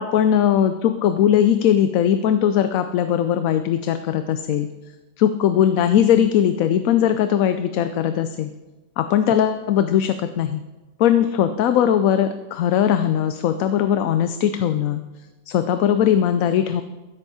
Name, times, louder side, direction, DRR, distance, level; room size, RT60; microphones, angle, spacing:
voice 1, 0.0-4.7 5.2-8.5 9.0-10.6 11.0-15.0 15.5-16.8, left 9 dB, 75° left, 10 dB, 1.0 m, -19 dB
15.5 x 8.1 x 4.1 m, 1.2 s
omnidirectional pair, 1.5 m